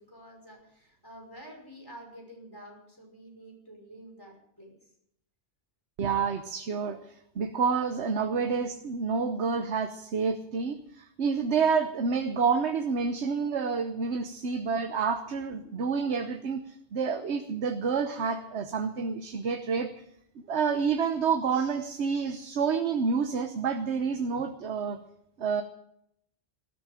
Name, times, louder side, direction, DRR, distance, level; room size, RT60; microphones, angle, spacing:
voice 1, 0.0-4.7, right 1 dB, 20° left, 0 dB, 5.6 m, -49 dB
voice 2, 6.0-7.0 7.3-16.6 16.9-19.9 20.5-25.0 25.4-25.6, right 5 dB, 80° right, 7 dB, 1.3 m, -28 dB
19.0 x 13.0 x 5.1 m, 0.73 s
omnidirectional pair, 1.1 m